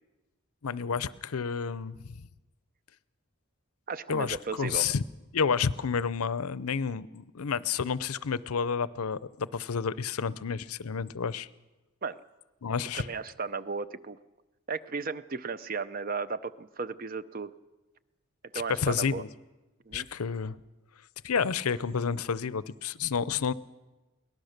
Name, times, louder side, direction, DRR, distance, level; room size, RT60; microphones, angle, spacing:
voice 1, 0.6-2.2 4.1-5.0 5.3-11.5 12.6-13.1 18.8-19.3 19.9-20.6 21.2-23.5, left 6 dB, 90° left, 18 dB, 0.6 m, -30 dB
voice 2, 3.9-4.9 12.0-12.2 12.9-14.2 14.7-17.5 18.5-19.2 19.9-20.1, right 4 dB, 40° right, 14 dB, 0.6 m, -35 dB
22.5 x 18.5 x 6.6 m, 1.1 s
head